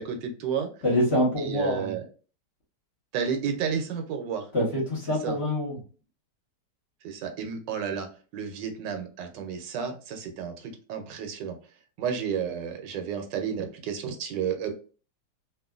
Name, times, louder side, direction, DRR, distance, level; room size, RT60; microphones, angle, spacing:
voice 1, 0.0-0.7 1.4-2.0 3.1-4.5 5.2-5.4 7.0-8.1 8.3-11.5 12.0-14.7, right 7 dB, 80° right, 5 dB, 1.3 m, -31 dB
voice 2, 0.8-1.9 4.5-5.8, left 1 dB, 40° left, -4 dB, 1.3 m, -25 dB
3.0 x 2.5 x 2.3 m, 0.37 s
omnidirectional pair, 1.9 m